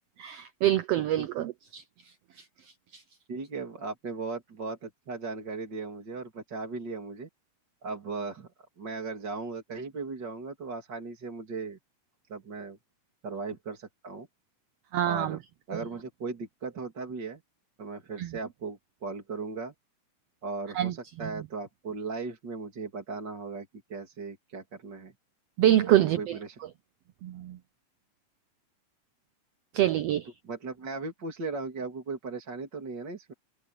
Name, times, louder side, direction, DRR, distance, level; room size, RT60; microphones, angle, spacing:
voice 1, 0.2-1.8 2.4-2.5 2.9-3.0 14.9-15.4 18.2-18.3 20.7-20.9 21.2-21.3 25.6-26.4 27.2-27.6 29.7-30.3, right 12 dB, 80° right, 1.4 m, -25 dB
voice 2, 3.3-7.3 7.8-8.5 8.8-11.8 12.3-12.8 13.2-14.3 15.0-15.4 15.7-17.4 17.8-19.7 20.4-25.1 26.2-26.6 30.4-33.3, right 4 dB, 35° right, 3.1 m, -37 dB
omnidirectional pair, 3.6 m